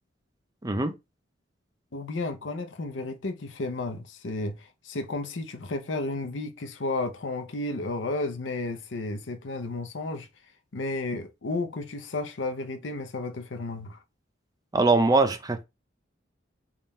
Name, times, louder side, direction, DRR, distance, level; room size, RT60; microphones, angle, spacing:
voice 1, 1.9-10.3 10.7-14.0, left 2 dB, 80° left, 0.7 m, -32 dB
voice 2, 14.7-15.6, right 3 dB, 20° right, 0.5 m, -22 dB
3.6 x 2.4 x 4.2 m
head